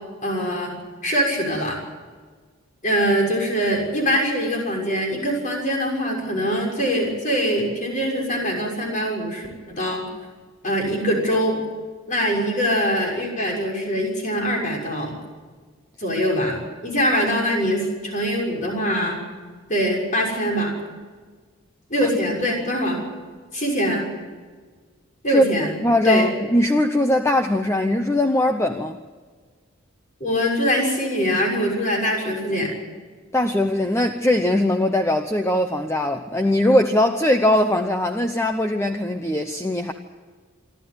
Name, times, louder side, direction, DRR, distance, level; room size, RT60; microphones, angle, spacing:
voice 1, 0.2-0.7 1.0-1.8 2.8-10.0 10.6-11.6 12.1-15.2 16.0-16.6 16.8-19.2 19.7-20.7 21.9-23.0 23.5-24.1 25.2-25.7 26.0-26.3 30.2-32.7, equal, 40° left, 0 dB, 6.4 m, -23 dB
voice 2, 25.8-29.0 33.3-39.9, left 1 dB, 15° left, 5 dB, 0.8 m, -20 dB
26.5 x 12.5 x 9.7 m, 1.5 s
head